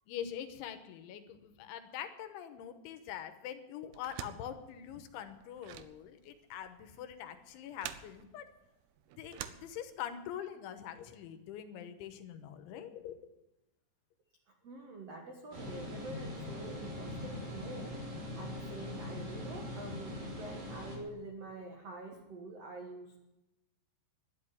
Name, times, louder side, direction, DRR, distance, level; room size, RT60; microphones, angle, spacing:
voice 1, 0.1-8.5 9.2-13.2, left 10 dB, 80° left, 9 dB, 3.3 m, -44 dB
sound 1, 3.9-10.3, right 11 dB, 90° right, 2.2 m, -48 dB
voice 2, 14.6-18.0 18.3-23.2, right 3 dB, 75° right, 2 dB, 1.4 m, -47 dB
sound 2, 15.5-21.0, left 1 dB, 50° right, 5.8 m, -42 dB
11.5 x 11.0 x 9.5 m, 0.97 s
omnidirectional pair, 5.6 m